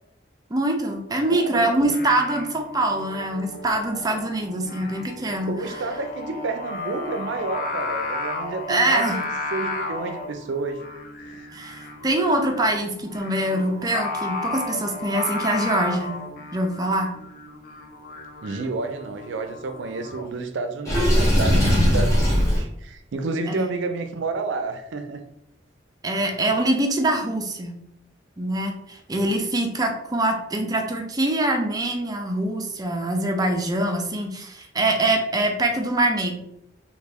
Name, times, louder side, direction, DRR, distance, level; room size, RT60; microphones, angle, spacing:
voice 1, 0.5-5.8 8.7-9.2 11.5-16.2 16.5-17.2 23.5-23.7 26.0-27.8 28.4-36.3, right 1 dB, 20° right, 3 dB, 0.5 m, -24 dB
voice 2, 1.3-2.0 5.2-10.8 11.3-11.4 18.4-25.2, right 3 dB, 80° right, 7 dB, 0.4 m, -30 dB
Singing, 1.8-20.3, left 2 dB, 50° left, 0.6 m, -34 dB
Water / Sink (filling or washing), 20.8-22.6, equal, 15° left, 1.0 m, -18 dB
3.1 x 2.4 x 3.5 m, 0.79 s
head